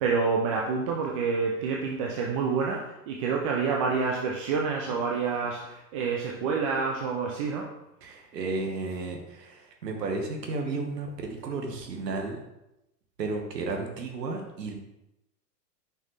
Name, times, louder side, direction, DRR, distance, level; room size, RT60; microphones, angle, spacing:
voice 1, 0.0-7.7, right 5 dB, 25° right, -1 dB, 0.3 m, -28 dB
voice 2, 8.0-12.4 13.2-14.7, right 3 dB, 75° right, 2 dB, 1.4 m, -33 dB
6.1 x 5.4 x 3.2 m, 0.91 s
figure-of-eight pair, 100°, 50 cm